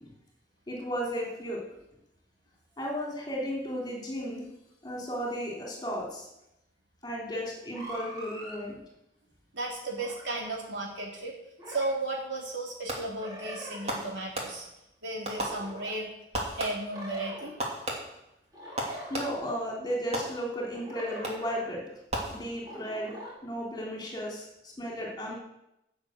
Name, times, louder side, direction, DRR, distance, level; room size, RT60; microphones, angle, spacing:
voice 1, 0.7-1.6 2.8-4.5 4.8-6.3 7.0-8.8 19.1-21.9 22.3-25.3, equal, 25° left, -2 dB, 3.3 m, -34 dB
sound 1, 7.7-8.6 10.0-10.2 11.6-11.9 13.2-14.0 15.3-16.0 16.9-17.6 18.5-19.6 20.7-21.6 22.6-23.3, right 1 dB, 20° right, 3.3 m, -43 dB
voice 2, 9.5-11.3 11.7-14.7 15.0-16.1 16.5-17.5, right 2 dB, 90° right, -2 dB, 3.8 m, -34 dB
Fireworks, 12.9-13.3 13.9-14.9 15.2-16.0 16.3-17.0 17.6-19.6 20.1-20.8 21.2-21.6 22.1-22.9, right 1 dB, 35° right, 2.7 m, -36 dB
12.0 x 7.0 x 8.2 m, 0.85 s
head